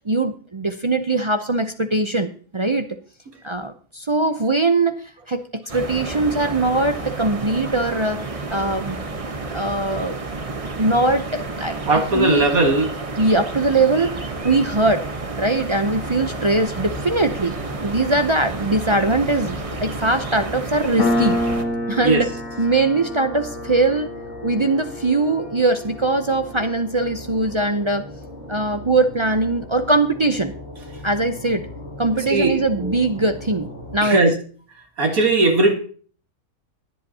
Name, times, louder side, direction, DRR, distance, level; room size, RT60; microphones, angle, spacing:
voice 1, 0.1-3.0 3.4-8.2 8.5-9.0 9.5-10.2 10.8-12.5 13.2-15.1 15.4-17.6 17.8-21.4 21.9-22.3 22.6-24.1 24.4-28.1 28.5-30.5 31.0-31.7 32.0-34.3, right 2 dB, 45° right, 6 dB, 0.4 m, -21 dB
sound 1, 5.7-21.7, right 3 dB, 25° right, 0.9 m, -31 dB
voice 2, 11.9-12.9 22.0-22.2 32.3-33.0 34.0-34.3 35.0-35.7, right 2 dB, 70° right, 4 dB, 2.2 m, -18 dB
sound 2, 15.8-34.0, left 1 dB, 45° left, 2.7 m, -38 dB
Piano, 21.0-28.2, left 1 dB, 65° left, 2.3 m, -28 dB
23.5 x 8.0 x 2.8 m, 0.41 s
omnidirectional pair, 1.6 m